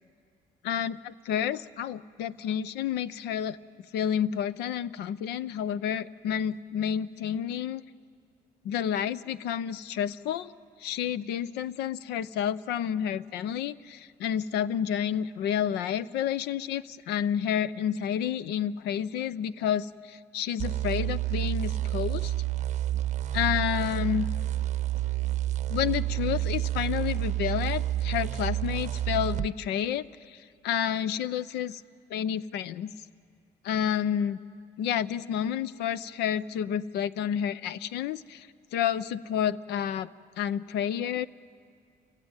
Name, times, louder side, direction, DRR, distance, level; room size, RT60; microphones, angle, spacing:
voice 1, 0.6-3.6 3.9-7.8 8.6-10.5 10.8-22.3 23.3-24.3 25.7-31.8 32.1-32.9 33.6-34.4 34.8-40.1 40.4-41.3, left 9 dB, 80° left, 17 dB, 0.7 m, -30 dB
sound 1, 20.6-29.5, right 14 dB, 45° right, 0.7 m, -29 dB
28.5 x 21.0 x 8.9 m, 2.2 s
cardioid pair, 110°, 17 cm